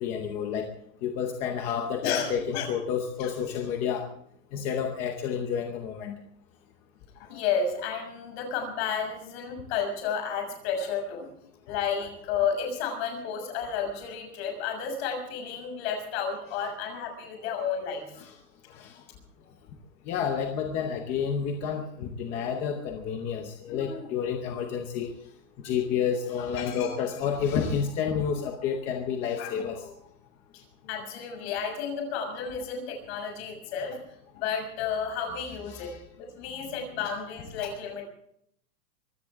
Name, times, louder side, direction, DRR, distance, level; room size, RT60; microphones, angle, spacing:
voice 1, 0.0-0.7 1.0-4.0 4.5-6.2 18.2-18.3 18.7-18.9 20.1-25.1 25.6-29.8 35.7-36.0, left 7 dB, 15° left, 4 dB, 0.7 m, -30 dB
voice 2, 1.7-2.7 3.2-3.3 7.1-11.3 11.7-18.0 23.7-24.0 26.4-27.0 29.4-29.9 30.5-34.0 34.4-35.9 36.2-38.0, left 6 dB, 40° left, 4 dB, 6.6 m, -32 dB
23.5 x 16.5 x 3.6 m, 0.70 s
supercardioid pair, 175°, 49 cm